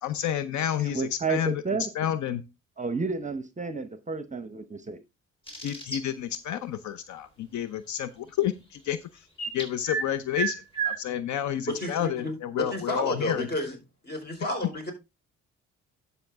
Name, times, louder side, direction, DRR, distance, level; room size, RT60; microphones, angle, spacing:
voice 1, 0.0-1.6 2.0-2.4 5.6-9.0 9.5-13.5, left 10 dB, 70° left, 0.7 m, -30 dB
voice 2, 0.8-1.9 2.8-5.0, right 4 dB, 25° right, 0.9 m, -31 dB
sound 1, 5.5-6.0 9.4-10.1 10.3-11.0, right 5 dB, 15° left, 3.8 m, -30 dB
voice 3, 11.7-13.8 14.0-14.9, left 1 dB, 35° left, 4.3 m, -31 dB
12.0 x 5.7 x 3.5 m
cardioid pair, 90°, 30 cm